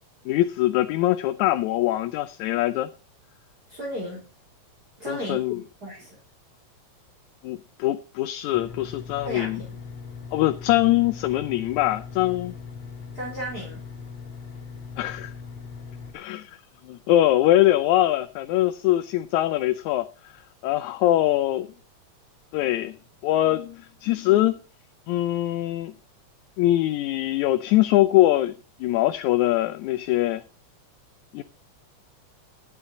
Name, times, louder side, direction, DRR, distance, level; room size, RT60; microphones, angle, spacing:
voice 1, 0.3-2.9 5.1-5.6 7.4-9.6 10.3-12.6 15.0-15.3 16.1-21.7 22.5-23.0 23.2-24.6 25.1-25.9 26.6-28.6 28.8-30.4 31.3-31.4, left 15 dB, 85° left, 2.0 m, -23 dB
voice 2, 3.7-4.2 5.0-5.5 5.8-6.2 9.2-9.8 13.1-13.8, equal, 30° right, 4.2 m, -34 dB
sound 1, 8.5-16.1, left 5 dB, 60° left, 2.9 m, -40 dB
12.0 x 9.9 x 4.1 m
omnidirectional pair, 3.3 m